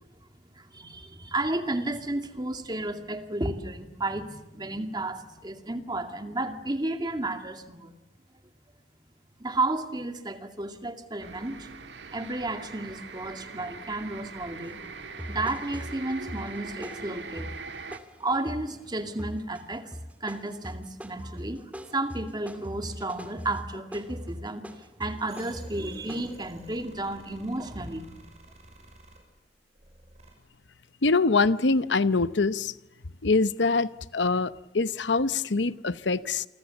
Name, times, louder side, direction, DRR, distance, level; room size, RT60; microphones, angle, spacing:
voice 1, 0.6-7.9 9.4-11.7 12.1-14.8 15.3-17.5 18.2-19.9 20.2-21.6 21.9-28.1, right 2 dB, 25° right, 6 dB, 2.4 m, -32 dB
sound 1, 11.2-18.0, right 4 dB, 80° right, 1.5 m, -42 dB
sound 2, 14.6-14.8 15.2-18.8 19.2-19.6 19.9-26.3, equal, 10° right, 2.4 m, -41 dB
sound 3, 25.3-29.2 29.7-30.3, right 1 dB, 40° right, 6.7 m, -52 dB
voice 2, 31.0-32.7 33.2-36.5, left 3 dB, 85° left, 14 dB, 0.9 m, -24 dB
29.0 x 25.0 x 7.1 m, 0.96 s
head